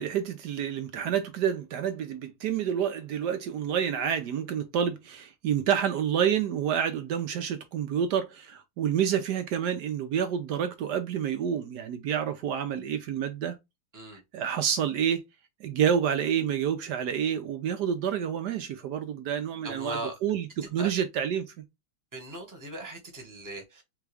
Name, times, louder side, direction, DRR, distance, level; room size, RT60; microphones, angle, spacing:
voice 1, 0.0-13.6 14.3-15.2 15.6-21.5, right 8 dB, 70° right, 1.0 m, -28 dB
voice 2, 19.6-20.1 20.8-20.9 22.1-23.8, right 2 dB, 10° right, 1.1 m, -38 dB
4.1 x 3.5 x 3.3 m
omnidirectional pair, 2.3 m